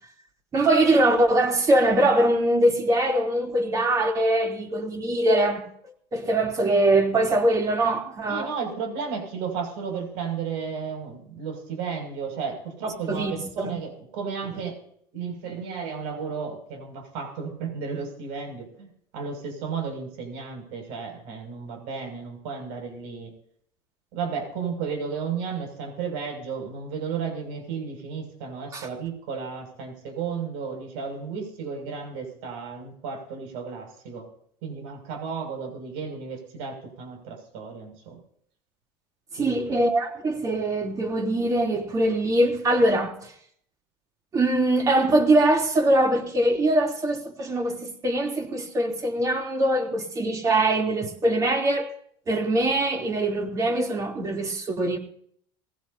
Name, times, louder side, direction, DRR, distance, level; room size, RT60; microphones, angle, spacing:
voice 1, 0.5-5.7 6.1-8.5 13.1-13.7 28.7-28.9 39.3-43.3 44.3-51.9 52.3-55.0, right 1 dB, 30° right, 3.4 m, -22 dB
voice 2, 8.3-14.8 15.1-23.3 24.1-34.3 34.6-38.2 39.4-39.7, right 6 dB, 70° right, 6.7 m, -33 dB
20.5 x 16.0 x 2.9 m
supercardioid pair, 115°, 11 cm